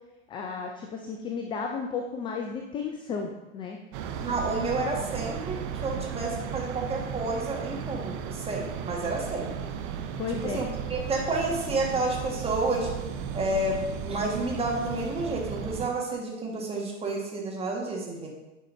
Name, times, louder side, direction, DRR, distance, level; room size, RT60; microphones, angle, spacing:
voice 1, 0.3-3.8 8.9-9.0 10.2-10.6, left 5 dB, 15° left, 3 dB, 0.3 m, -33 dB
sound 1, 3.9-15.9, right 7 dB, 45° right, 0.7 m, -35 dB
voice 2, 4.2-9.7 10.4-12.9 13.3-18.3, right 2 dB, 15° right, -1 dB, 1.6 m, -30 dB
9.7 x 5.6 x 2.7 m, 1.0 s
hypercardioid pair, 100°, 39 cm